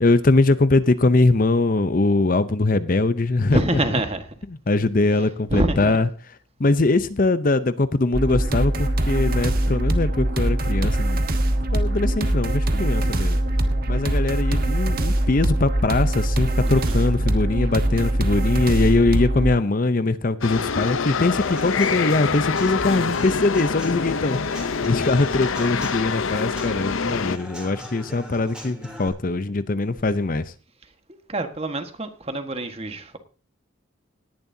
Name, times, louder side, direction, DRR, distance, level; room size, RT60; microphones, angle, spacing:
voice 1, 0.0-3.8 4.7-6.1 6.6-11.2 11.7-13.4 13.9-30.5, left 2 dB, 40° left, 0.6 m, -22 dB
voice 2, 3.5-4.3 5.5-6.0 16.7-17.0 22.8-23.2 31.3-33.2, right 1 dB, 30° right, 1.5 m, -26 dB
sound 1, 8.1-19.5, right 1 dB, 45° right, 1.3 m, -22 dB
sound 2, 20.4-27.4, left 5 dB, 75° left, 0.8 m, -25 dB
Human voice / Acoustic guitar / Drum, 21.1-29.1, equal, 5° right, 3.2 m, -41 dB
18.5 x 11.0 x 2.8 m
head